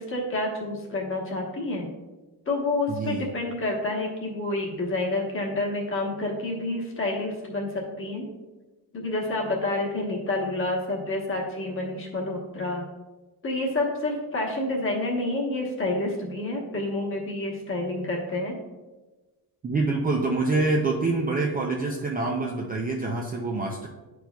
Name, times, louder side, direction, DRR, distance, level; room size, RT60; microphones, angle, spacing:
voice 1, 0.0-1.9 2.5-8.3 8.9-12.8 13.4-18.6, left 2 dB, 30° left, 0 dB, 1.1 m, -28 dB
voice 2, 2.9-3.3 8.3-8.4 19.6-23.9, right 3 dB, 25° right, 0 dB, 0.4 m, -26 dB
10.0 x 4.6 x 2.3 m, 1.2 s
cardioid pair, 175°, 41 cm